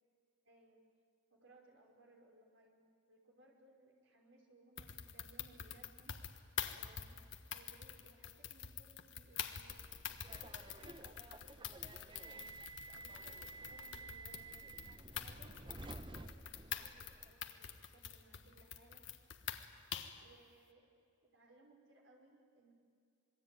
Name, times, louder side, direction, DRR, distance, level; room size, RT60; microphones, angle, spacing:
voice 1, 0.5-0.9 1.3-6.3 6.5-9.9 10.2-12.4 12.9-14.6 15.1-19.1 20.1-20.9 21.2-22.7, right 2 dB, 65° right, 0 dB, 5.4 m, -65 dB
sound 1, 4.8-20.2, left 9 dB, 60° left, 1.5 m, -46 dB
Subway metro underground, 9.7-17.3, right 3 dB, 25° right, 0.8 m, -53 dB
27.0 x 22.0 x 9.3 m, 2.3 s
head